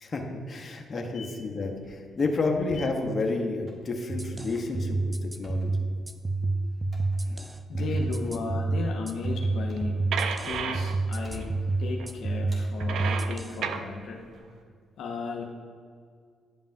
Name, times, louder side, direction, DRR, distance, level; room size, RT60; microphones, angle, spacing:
voice 1, 0.0-5.7 7.2-7.4 8.0-8.1, left 3 dB, 40° left, 2 dB, 0.9 m, -30 dB
sound 1, 1.5-2.4 2.7-3.4 3.7-3.9 4.4-10.9 11.2-12.1 12.5-13.4 14.0-14.4, right 2 dB, 40° right, 1.8 m, -48 dB
sound 2, 4.1-13.6, right 2 dB, 15° right, 0.5 m, -29 dB
voice 2, 7.7-10.0 10.4-11.5 11.8-14.2 15.0-15.4, left 4 dB, 75° left, 0 dB, 0.7 m, -35 dB
sound 3, 9.4-9.5 9.8-9.9 10.1-11.4 11.8-12.1 12.6-13.9, right 7 dB, 75° right, 0.4 m, -32 dB
10.0 x 5.3 x 2.6 m, 2.1 s
supercardioid pair, 65°, 0 cm